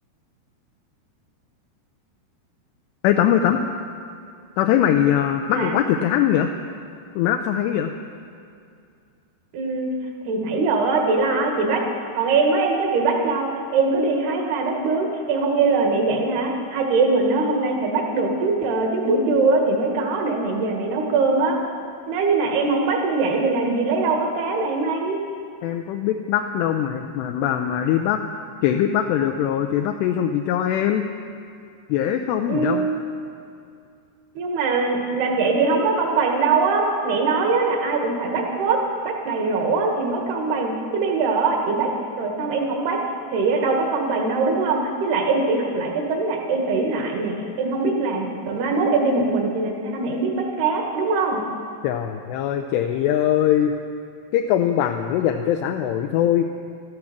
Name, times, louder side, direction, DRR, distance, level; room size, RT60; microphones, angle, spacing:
voice 1, 3.0-3.6 4.6-6.5 7.2-7.9 25.6-28.2 28.6-31.1 31.9-32.9 51.8-53.7 54.3-56.5, left 10 dB, 80° left, 5 dB, 2.7 m, -21 dB
voice 2, 9.5-9.9 10.3-11.8 12.1-21.6 22.1-25.2 32.5-33.0 34.4-38.8 39.1-41.9 42.2-43.0 43.3-51.4, right 3 dB, 70° right, 1 dB, 3.6 m, -22 dB
16.0 x 13.5 x 5.9 m, 2.4 s
omnidirectional pair, 5.0 m